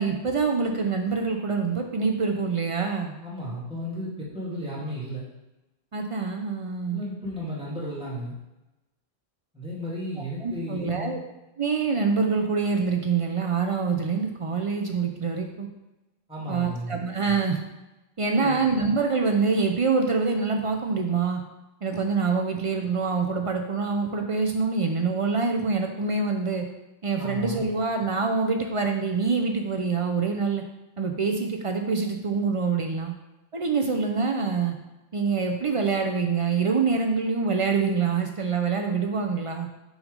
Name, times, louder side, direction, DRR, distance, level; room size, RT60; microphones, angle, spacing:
voice 1, 0.0-3.1 5.9-7.0 10.4-11.2 11.6-15.7 16.5-17.6 18.2-21.4 21.8-26.7 27.0-30.6 31.0-33.1 33.5-34.8 35.1-39.7, right 4 dB, 55° right, 3 dB, 0.3 m, -25 dB
voice 2, 3.2-5.2 6.9-8.3 9.5-11.2 16.3-17.0 18.3-18.7 27.2-27.7, equal, 5° right, -8 dB, 2.1 m, -34 dB
6.0 x 4.0 x 5.0 m, 1.0 s
omnidirectional pair, 1.3 m